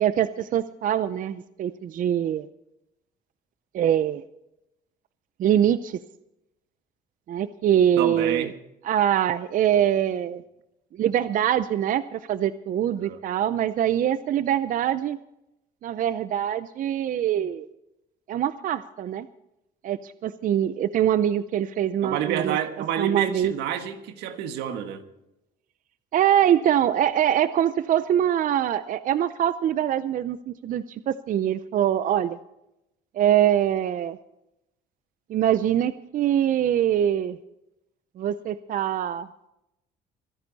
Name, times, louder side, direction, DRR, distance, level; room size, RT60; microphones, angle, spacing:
voice 1, 0.0-2.5 3.7-4.2 5.4-6.0 7.3-8.5 8.8-10.4 11.0-15.2 15.8-17.7 18.3-19.3 19.8-22.6 23.0-23.5 26.1-32.4 33.1-34.2 35.3-37.4 38.2-39.3, right 10 dB, 50° right, 14 dB, 0.6 m, -23 dB
voice 2, 8.0-8.5 13.0-13.2 22.0-25.0, right 9 dB, 90° right, 7 dB, 1.6 m, -29 dB
24.5 x 10.5 x 4.1 m, 0.87 s
cardioid pair, 110°, 17 cm